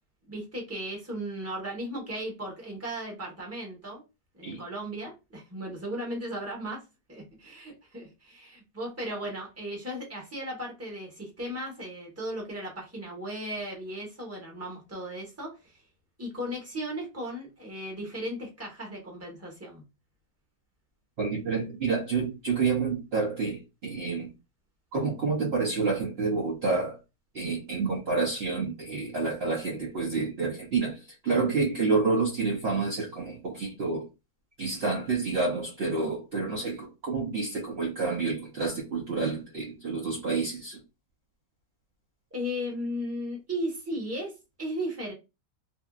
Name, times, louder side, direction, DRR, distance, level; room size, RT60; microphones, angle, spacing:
voice 1, 0.3-4.0 4.3-6.8 7.1-15.7 16.2-19.8 42.3-44.3 44.6-45.1, equal, 10° right, 0.8 m, -36 dB
voice 2, 21.2-24.3 24.9-27.0 27.3-34.0 34.6-40.8, right 4 dB, 70° right, 0.5 m, -29 dB
2.7 x 2.6 x 2.3 m
omnidirectional pair, 1.9 m